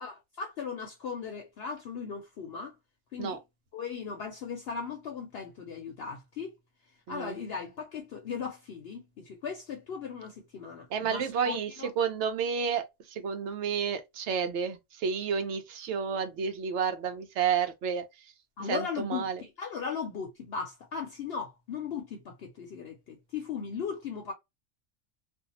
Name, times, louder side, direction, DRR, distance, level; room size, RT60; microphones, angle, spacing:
voice 1, 0.0-2.8 3.1-3.4 3.7-6.5 6.8-11.9 18.6-24.3, left 6 dB, 60° left, 0.7 m, -38 dB
voice 2, 7.1-7.4 10.9-18.3 18.7-19.4, right 6 dB, 70° right, 0.9 m, -31 dB
2.6 x 2.1 x 2.8 m
omnidirectional pair, 1.3 m